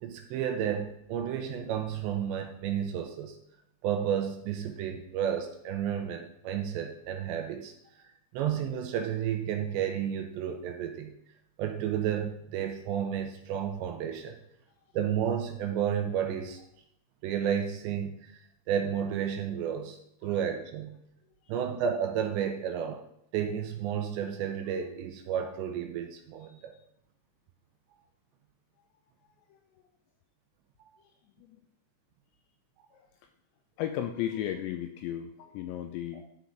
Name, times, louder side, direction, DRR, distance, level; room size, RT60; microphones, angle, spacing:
voice 1, 0.0-3.4 3.8-7.7 8.3-11.1 11.6-14.4 14.9-16.6 17.2-18.3 18.7-21.0 21.5-23.0 23.3-26.6, right 9 dB, 80° right, 4 dB, 2.8 m, -31 dB
voice 2, 33.8-36.2, left 11 dB, 85° left, 6 dB, 2.6 m, -35 dB
12.0 x 5.8 x 3.8 m, 0.76 s
omnidirectional pair, 5.5 m